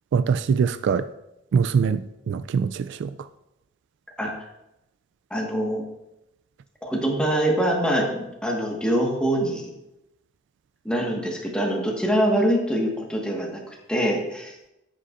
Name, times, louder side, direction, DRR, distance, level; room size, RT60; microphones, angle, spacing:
voice 1, 0.1-1.1 1.5-3.3, right 6 dB, 60° right, 13 dB, 0.3 m, -23 dB
voice 2, 5.3-5.8 6.8-9.7 10.8-13.6 13.9-14.6, right 1 dB, 5° left, -1 dB, 1.5 m, -24 dB
9.7 x 8.3 x 2.5 m, 0.90 s
head